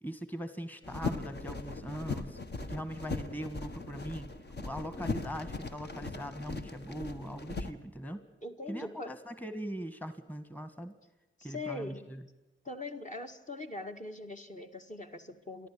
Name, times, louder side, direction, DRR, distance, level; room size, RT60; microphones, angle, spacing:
voice 1, 0.0-4.3 4.6-8.2 8.7-10.9 11.4-12.2, equal, 10° left, 10 dB, 1.7 m, -41 dB
sound 1, 0.8-7.7, left 3 dB, 55° left, 1.7 m, -39 dB
voice 2, 8.4-9.1 11.4-12.0 12.6-15.7, left 2 dB, 35° left, 8 dB, 1.9 m, -41 dB
29.0 x 11.5 x 8.5 m, 1.0 s
wide cardioid pair, 80°, 21 cm